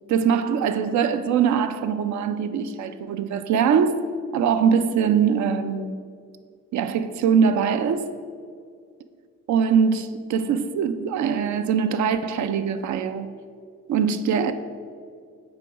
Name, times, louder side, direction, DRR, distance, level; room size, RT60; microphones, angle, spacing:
voice 1, 0.1-4.0 4.3-5.9 6.7-8.1 9.5-13.3 13.9-14.5, right 7 dB, 70° right, 0.5 m, -22 dB
8.2 x 3.0 x 6.0 m
cardioid pair, 90°, 30 cm